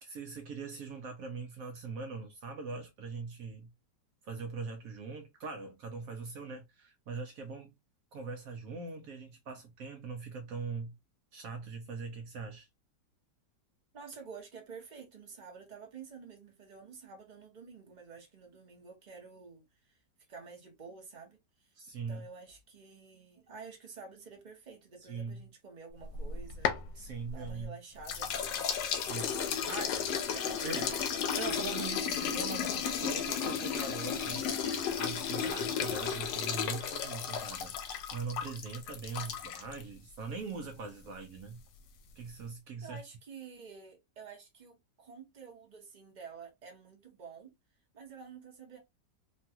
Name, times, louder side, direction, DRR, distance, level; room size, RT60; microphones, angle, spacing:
voice 1, 0.0-3.7 4.2-7.7 8.1-10.9 11.3-12.7 21.8-22.3 25.1-25.4 26.9-27.7 29.0-29.3 29.7-30.0 30.6-30.9 31.4-41.6 42.2-43.0, right 4 dB, 65° right, 0.9 m, -41 dB
voice 2, 13.9-20.0 20.3-28.5 29.1-30.0 30.2-31.0 42.8-47.5 47.9-48.8, right 5 dB, 35° right, 0.8 m, -50 dB
sound 1, 26.1-27.7 28.1-39.8, left 7 dB, 80° left, 1.2 m, -34 dB
Ringtone, 28.8-35.5, left 6 dB, 60° left, 1.2 m, -50 dB
3.1 x 2.3 x 2.7 m
omnidirectional pair, 1.9 m